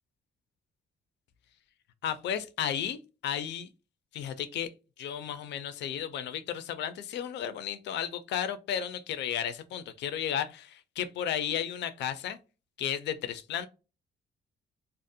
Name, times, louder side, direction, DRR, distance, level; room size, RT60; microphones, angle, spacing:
voice 1, 2.0-3.7 4.1-4.7 5.0-12.4 12.8-13.7, left 9 dB, 70° left, 0.4 m, -33 dB
2.5 x 2.0 x 2.6 m
cardioid pair, 160°, 19 cm